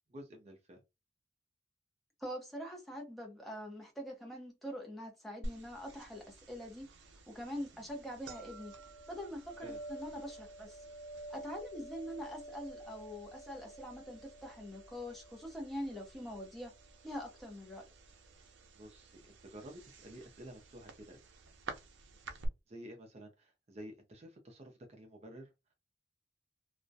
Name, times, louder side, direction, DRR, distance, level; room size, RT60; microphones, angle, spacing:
voice 1, 0.1-0.8 9.6-9.8 18.3-21.2 22.7-25.5, equal, 35° right, 0.5 m, -51 dB
voice 2, 2.2-6.9 7.3-8.7 9.1-10.8 11.3-16.7 17.0-17.8, equal, ahead, 0.7 m, -44 dB
sound 1, 5.4-22.5, right 2 dB, 90° right, 0.5 m, -50 dB
2.3 x 2.1 x 2.6 m
head